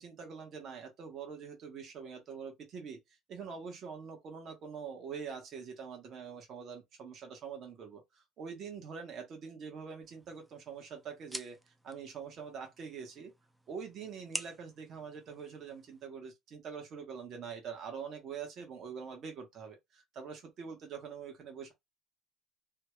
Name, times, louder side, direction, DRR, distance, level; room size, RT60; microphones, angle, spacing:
voice 1, 0.0-3.0 3.3-13.3 13.7-21.7, right 6 dB, 45° right, 1.2 m, -44 dB
sound 1, 10.0-16.1, right 1 dB, 5° right, 0.4 m, -48 dB
2.8 x 2.3 x 3.1 m
cardioid pair, 140°, 0 cm